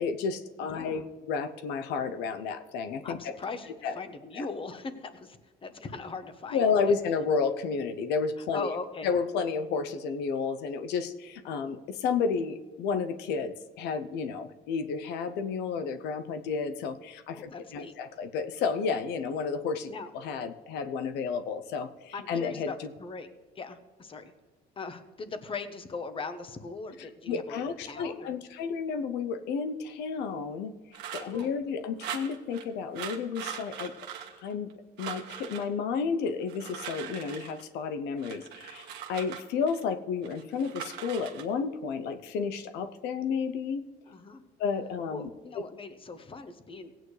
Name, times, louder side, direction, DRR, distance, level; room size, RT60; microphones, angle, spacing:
voice 1, 0.0-3.3 3.8-4.0 4.4-4.5 6.5-8.7 9.0-22.7 27.3-33.9 34.4-34.7 35.0-43.8 44.6-45.3, left 5 dB, 85° left, 9 dB, 0.7 m, -31 dB
voice 2, 0.6-1.0 3.0-6.9 8.4-9.1 17.3-17.9 19.9-20.1 22.1-23.3 23.5-24.3 24.8-28.3 31.2-31.6 44.1-44.4 45.1-46.9, left 4 dB, 30° left, 10 dB, 1.1 m, -40 dB
sound 1, 30.9-31.5 32.0-32.6 32.9-34.7 35.0-35.7 36.4-37.6 38.2-39.8 40.2-41.4, right 9 dB, 85° right, 1.4 m, -41 dB
16.5 x 9.0 x 3.2 m, 1.3 s
cardioid pair, 110°, 17 cm